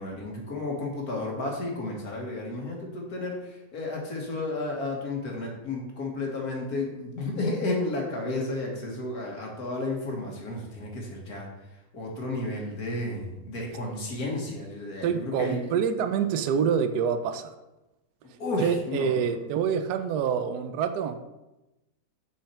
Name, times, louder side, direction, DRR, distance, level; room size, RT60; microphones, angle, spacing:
voice 1, 0.0-3.4 3.7-11.5 11.9-15.1 15.4-15.6 18.4-19.1, left 2 dB, 65° left, 0 dB, 2.0 m, -32 dB
voice 2, 15.0-17.5 18.6-21.2, right 7 dB, 80° right, 9 dB, 1.2 m, -26 dB
6.5 x 5.6 x 4.4 m, 0.98 s
omnidirectional pair, 1.7 m